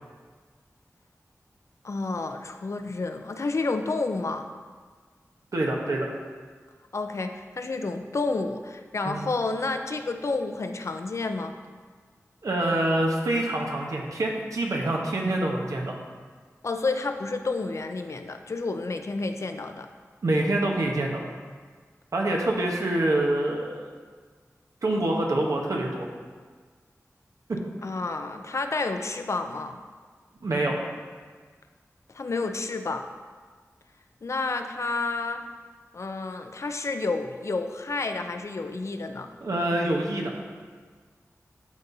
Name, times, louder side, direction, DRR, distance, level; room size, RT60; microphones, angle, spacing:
voice 1, 1.8-4.5 6.9-11.5 16.6-19.9 27.8-29.8 32.1-33.1 34.2-35.4 35.9-39.3, left 3 dB, 60° left, 6 dB, 0.5 m, -30 dB
voice 2, 5.5-6.1 9.0-9.2 12.4-16.0 20.2-21.2 22.1-23.9 24.8-26.1 27.5-27.6 30.4-30.8 39.4-40.4, right 1 dB, 80° right, 0 dB, 1.0 m, -26 dB
12.0 x 4.1 x 2.7 m, 1.6 s
wide cardioid pair, 70°, 6 cm